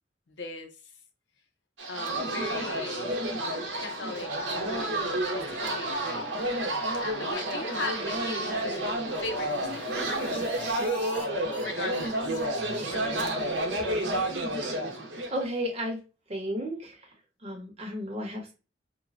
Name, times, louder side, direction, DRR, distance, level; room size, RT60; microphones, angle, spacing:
voice 1, 0.3-0.9 1.9-3.2 3.8-5.0 5.3-6.2 6.9-8.9 9.2-10.5 11.6-12.4 12.9-13.8, left 3 dB, 85° left, 0.6 m, -39 dB
sound 1, 1.8-15.4, right 1 dB, 90° right, 0.7 m, -30 dB
sound 2, 9.2-11.3 11.5-11.6 11.9-12.0 12.3-12.4 12.7-12.8 13.1-13.2 13.5-13.6 13.9-14.0 14.3-14.4, equal, 5° left, 0.8 m, -42 dB
voice 2, 15.3-16.0 16.3-17.0 17.4-18.5, equal, 35° right, 0.8 m, -33 dB
3.0 x 2.2 x 2.4 m
head